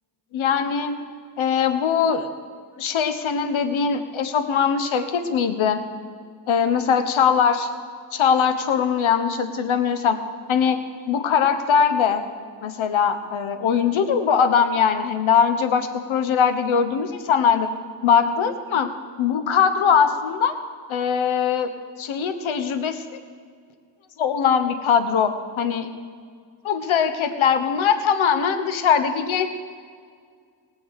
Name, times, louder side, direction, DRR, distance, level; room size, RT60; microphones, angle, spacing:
voice 1, 0.3-1.0 1.4-2.3 2.8-5.8 6.5-7.7 8.1-10.2 10.5-12.2 12.6-17.7 18.0-18.9 19.2-20.5 20.9-21.7 22.0-23.2 24.2-25.9 26.6-29.5, left 7 dB, 70° left, 10 dB, 1.2 m, -21 dB
18.5 x 7.1 x 6.6 m, 2.1 s
supercardioid pair, 45°, 49 cm